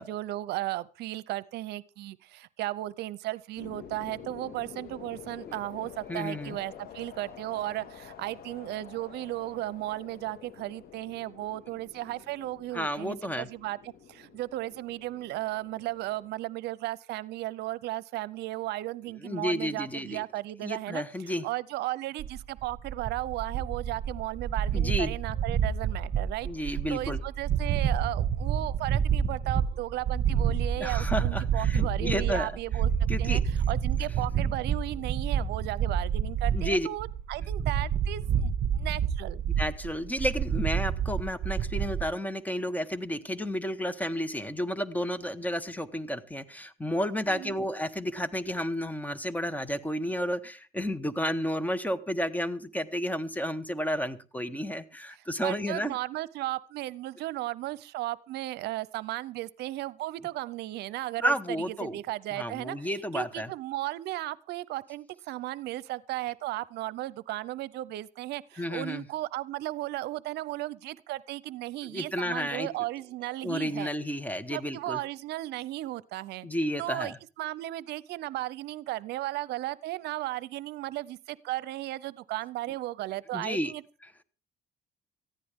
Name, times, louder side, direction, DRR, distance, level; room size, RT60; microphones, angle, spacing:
voice 1, 0.0-21.0 21.4-32.9 33.2-39.4 47.3-47.6 55.4-61.3 61.8-73.9 74.5-76.5 76.8-83.8, right 16 dB, 80° right, 20 dB, 0.7 m, -35 dB
sound 1, 3.6-16.3, left 8 dB, 65° left, 1.9 m, -48 dB
voice 2, 6.1-6.6 12.7-13.5 19.2-20.2 20.6-21.5 24.7-25.1 26.4-27.2 30.8-32.5 33.1-33.4 36.5-36.9 39.6-56.0 61.2-62.0 62.3-63.5 68.6-69.1 71.8-72.7 73.4-75.0 76.4-77.2 83.3-83.7, equal, 10° left, 14 dB, 1.3 m, -31 dB
sound 2, 22.2-42.0, right 8 dB, 50° right, 1.8 m, -28 dB
18.5 x 14.5 x 3.6 m, 0.35 s
cardioid pair, 110°, 17 cm